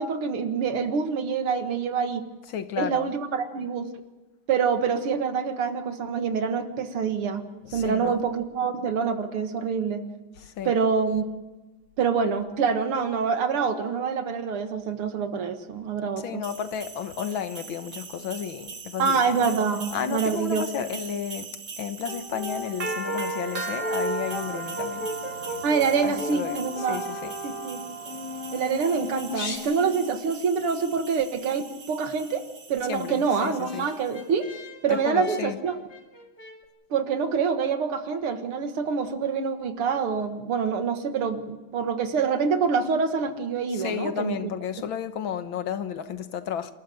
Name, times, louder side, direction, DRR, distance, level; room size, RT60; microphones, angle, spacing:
voice 1, 0.0-2.2 2.8-3.9 4.5-7.4 7.7-10.0 10.6-11.2 12.0-16.4 19.0-20.7 25.6-27.0 27.4-27.8 28.5-32.4 32.7-34.5 34.8-35.8 36.9-44.4, right 5 dB, 85° right, 2.5 m, -26 dB
voice 2, 2.5-3.1 7.7-8.2 10.4-10.7 16.2-19.5 19.9-21.5 21.8-25.1 26.0-26.6 26.9-27.3 32.9-33.9 34.9-35.6 43.8-46.7, left 8 dB, 70° left, 1.8 m, -32 dB
sound 1, 16.4-34.1, right 4 dB, 45° right, 1.9 m, -39 dB
Brass instrument, 22.1-30.4 32.9-36.6, equal, 50° left, 3.3 m, -36 dB
sound 2, 24.2-29.6, left 4 dB, 90° left, 3.8 m, -44 dB
27.5 x 13.5 x 9.1 m
omnidirectional pair, 2.3 m